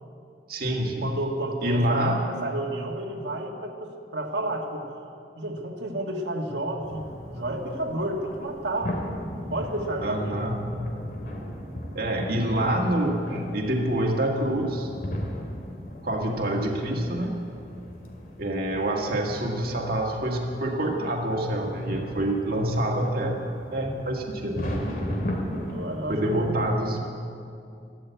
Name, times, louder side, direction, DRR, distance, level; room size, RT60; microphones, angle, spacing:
voice 1, 0.5-1.1 1.6-2.2 10.0-10.7 11.9-14.9 16.0-17.4 18.4-23.4 23.7-24.7 26.1-27.0, right 1 dB, 60° right, 0 dB, 1.7 m, -26 dB
voice 2, 1.0-4.9 5.4-9.0 9.3-10.3 25.7-26.5, right 1 dB, 85° right, 0 dB, 1.7 m, -31 dB
sound 1, 6.8-26.8, equal, 55° left, 2.4 m, -37 dB
13.0 x 12.5 x 8.1 m, 2.5 s
head